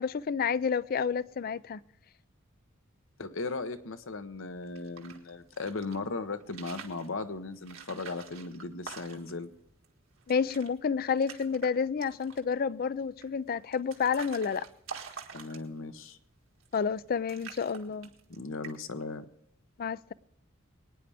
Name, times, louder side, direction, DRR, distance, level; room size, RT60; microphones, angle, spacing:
voice 1, 0.0-1.8 10.3-14.7 16.7-18.1 19.8-20.1, left 6 dB, 45° left, 0.4 m, -30 dB
voice 2, 3.2-9.5 15.3-16.2 18.3-19.2, left 3 dB, 70° left, 0.9 m, -37 dB
Water Shaking in Plastic Bottle, 4.6-6.0 6.4-7.1 7.6-9.5 9.8-9.9 10.2-10.7 11.0-11.7 12.0-12.5 13.2-15.9 16.6-17.0 17.3-18.4 18.6-19.0, right 6 dB, 85° right, 1.8 m, -46 dB
23.0 x 9.8 x 3.5 m
head